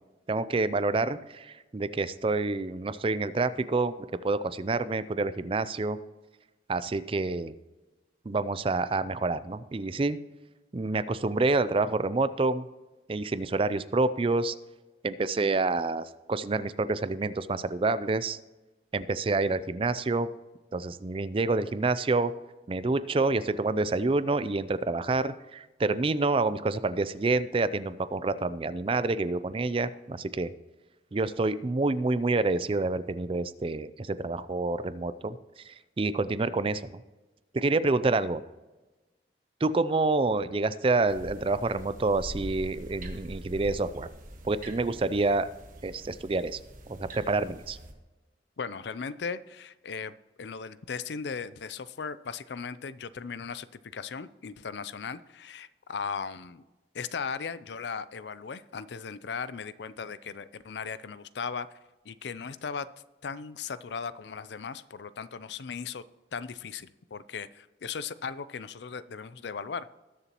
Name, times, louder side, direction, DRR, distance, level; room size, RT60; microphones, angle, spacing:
voice 1, 0.3-3.9 4.2-6.0 6.7-7.5 8.3-10.2 10.7-12.7 13.1-14.5 15.0-18.4 18.9-20.3 20.7-22.3 22.7-30.5 31.1-35.4 35.6-37.0 37.5-38.4 39.6-44.1 44.4-45.5 45.8-46.6 46.9-47.8, right 3 dB, 30° right, 14 dB, 0.4 m, -28 dB
sound 1, 41.1-47.9, right 1 dB, 45° right, 1.4 m, -44 dB
voice 2, 48.6-53.7 53.9-56.6 56.9-61.7 62.0-62.9 63.2-66.0 66.3-69.9, left 5 dB, 70° left, 16 dB, 0.5 m, -37 dB
19.5 x 6.9 x 3.0 m, 1.1 s
head